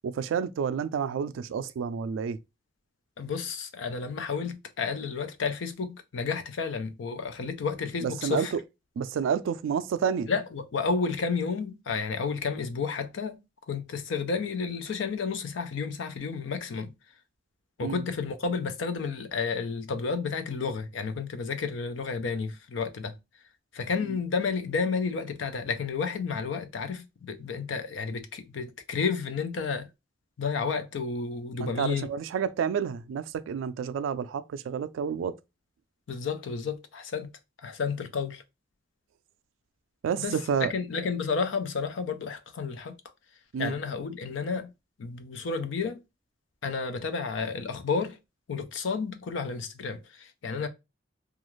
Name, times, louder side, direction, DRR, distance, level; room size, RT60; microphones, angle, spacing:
voice 1, 0.0-2.4 8.0-8.6 9.0-10.3 17.8-18.0 24.1-24.2 31.6-35.4 40.0-40.7 43.5-43.7, right 7 dB, 90° right, 0.3 m, -29 dB
voice 2, 3.2-8.5 10.3-13.4 13.7-16.9 17.8-23.2 23.7-29.9 30.4-32.1 36.1-37.3 37.6-38.4 40.2-42.9 43.6-44.7 45.0-46.0 46.6-48.2 48.5-50.7, left 5 dB, 80° left, 0.4 m, -31 dB
2.4 x 2.3 x 3.0 m
head